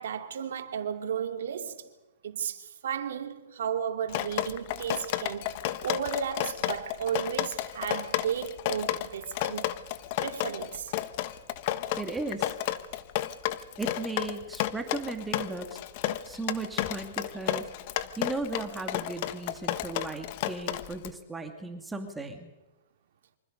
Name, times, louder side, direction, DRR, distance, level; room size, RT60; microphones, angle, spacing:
voice 1, 0.0-1.9 2.2-5.5 5.8-9.7 10.2-10.9, right 7 dB, 75° right, 2.6 m, -34 dB
Drip, 4.1-21.1, left 14 dB, 50° left, 1.3 m, -32 dB
voice 2, 12.0-12.6 13.8-15.8 16.3-17.7 18.2-22.5, right 3 dB, 10° right, 2.6 m, -36 dB
27.5 x 25.0 x 5.3 m
hypercardioid pair, 125°, 0 cm